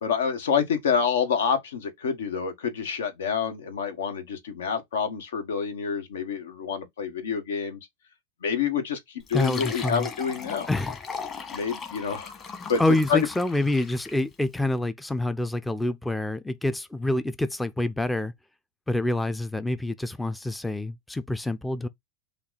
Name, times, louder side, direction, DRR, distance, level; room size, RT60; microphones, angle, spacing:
voice 1, 0.0-7.8 8.4-10.7 11.5-12.3 12.7-12.8 13.1-13.3, left 6 dB, 85° left, 1.4 m, -27 dB
Fill (with liquid), 9.2-14.3, left 5 dB, 25° left, 1.2 m, -38 dB
voice 2, 9.3-10.1 10.7-11.0 12.8-18.3 18.9-21.9, left 2 dB, 5° left, 0.4 m, -27 dB
5.8 x 2.3 x 4.0 m
supercardioid pair, 130°, 0 cm